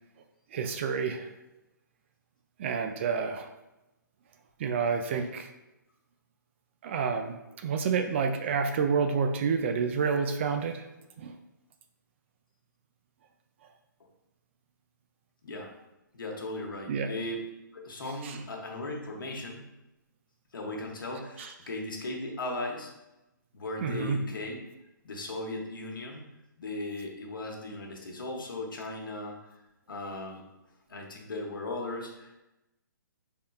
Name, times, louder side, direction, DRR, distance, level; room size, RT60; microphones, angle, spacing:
voice 1, 0.5-1.3 2.6-3.5 4.6-5.5 6.8-10.8 11.2-11.3 16.9-17.1 18.2-18.4 21.4-21.5 23.8-24.2, right 5 dB, 35° right, 6 dB, 0.3 m, -29 dB
voice 2, 16.1-17.4 17.7-19.7 20.5-22.9 23.5-24.6 25.0-26.3 26.6-29.4 29.9-30.4 30.9-32.4, left 2 dB, 85° left, 0 dB, 0.9 m, -37 dB
4.1 x 3.6 x 2.3 m, 0.97 s
hypercardioid pair, 150°, 11 cm